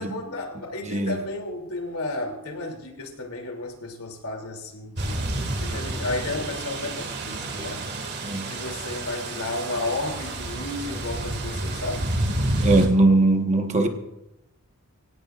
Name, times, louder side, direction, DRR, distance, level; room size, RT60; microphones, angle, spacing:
voice 1, 0.0-7.8 8.4-12.1, left 2 dB, 80° left, 2 dB, 3.0 m, -33 dB
voice 2, 0.8-1.3 8.2-8.5 12.6-13.9, right 2 dB, 30° right, 4 dB, 1.4 m, -20 dB
sound 1, 5.0-12.9, right 1 dB, 50° right, 2.3 m, -29 dB
24.0 x 17.5 x 2.5 m, 0.92 s
head